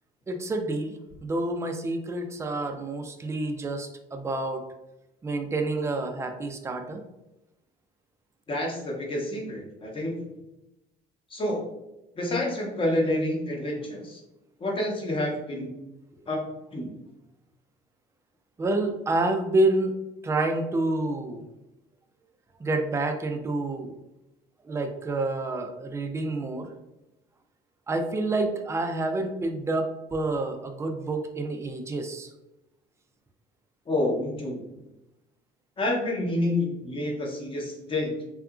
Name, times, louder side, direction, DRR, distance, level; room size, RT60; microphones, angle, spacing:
voice 1, 0.3-4.6 5.2-7.0 18.6-20.0 20.2-21.5 22.6-23.9 24.6-26.7 27.9-32.3, right 2 dB, 15° right, 5 dB, 0.3 m, -28 dB
voice 2, 8.5-10.3 11.3-11.6 12.2-14.2 14.6-15.7 16.3-16.4 16.7-16.9 33.9-34.6 35.8-38.2, left 1 dB, 30° left, -1 dB, 0.8 m, -28 dB
2.8 x 2.4 x 2.3 m, 0.94 s
cardioid pair, 110°, 17 cm